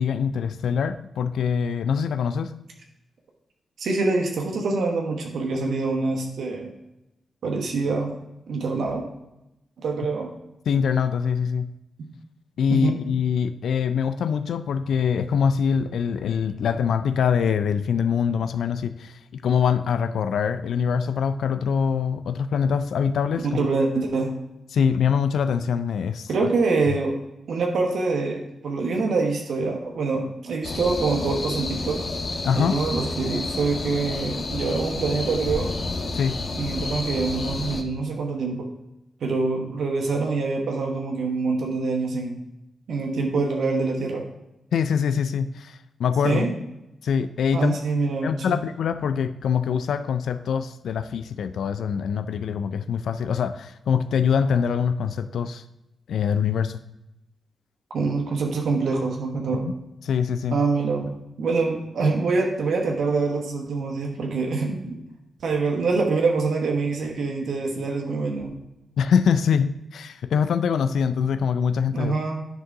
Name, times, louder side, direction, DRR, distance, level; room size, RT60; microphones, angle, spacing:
voice 1, 0.0-2.5 10.7-11.7 12.6-23.6 24.7-26.3 26.9-27.0 32.4-32.8 36.1-36.4 44.7-46.5 47.0-47.7 48.2-55.6 56.1-56.8 60.0-60.6 69.0-72.2, left 7 dB, 80° left, 11 dB, 0.4 m, -24 dB
voice 2, 3.8-6.7 7.4-8.1 8.5-9.0 9.8-10.3 12.7-13.0 23.4-24.3 26.3-27.2 27.5-32.0 32.5-35.7 36.5-38.7 39.2-42.4 42.9-44.3 46.2-46.5 47.5-48.6 57.9-59.7 60.5-65.0 65.4-68.5 71.9-72.4, right 3 dB, 75° right, 2 dB, 1.1 m, -25 dB
sound 1, 30.6-37.8, left 3 dB, 50° left, 1.1 m, -30 dB
11.0 x 3.7 x 4.7 m, 0.90 s
cardioid pair, 55°, 0 cm